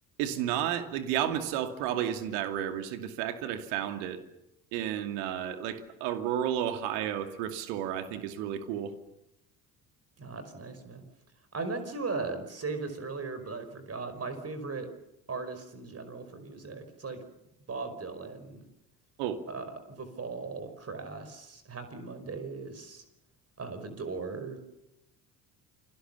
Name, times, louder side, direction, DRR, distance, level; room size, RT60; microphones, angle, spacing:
voice 1, 0.2-4.2 4.7-8.9 19.2-19.4, right 10 dB, 60° right, 8 dB, 2.5 m, -32 dB
voice 2, 10.2-11.0 11.5-14.9 15.3-17.2 17.7-18.7 19.5-23.0 23.6-24.6, right 4 dB, 30° right, 9 dB, 5.4 m, -38 dB
29.0 x 24.0 x 7.1 m, 0.83 s
figure-of-eight pair, 55°, 50 cm